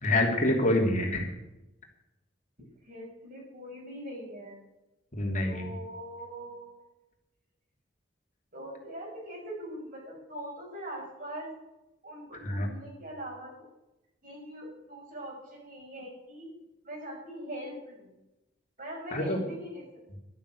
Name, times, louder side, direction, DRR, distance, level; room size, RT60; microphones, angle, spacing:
voice 1, 0.0-1.3 5.1-5.7 12.4-12.7 19.1-19.4, left 1 dB, 45° left, 1 dB, 2.9 m, -26 dB
voice 2, 2.8-4.6 5.4-6.8 8.5-11.5 12.0-13.5 14.2-16.5 16.8-18.1 18.8-19.9, right 1 dB, 45° right, -2 dB, 7.1 m, -42 dB
13.0 x 12.5 x 6.6 m, 0.96 s
head